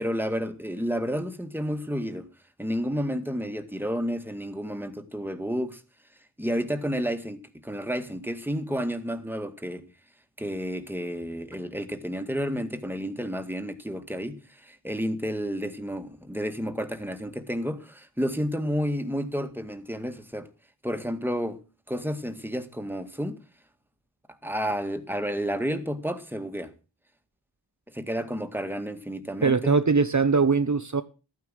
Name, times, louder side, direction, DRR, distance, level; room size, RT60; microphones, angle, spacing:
voice 1, 0.0-2.3 2.6-5.8 6.4-9.9 10.4-20.5 20.8-21.6 21.9-23.4 24.4-26.7 27.9-29.8, equal, 5° right, 1.9 m, -31 dB
voice 2, 29.4-31.0, right 4 dB, 45° right, 0.8 m, -21 dB
14.0 x 9.5 x 6.4 m
wide cardioid pair, 45°, 42 cm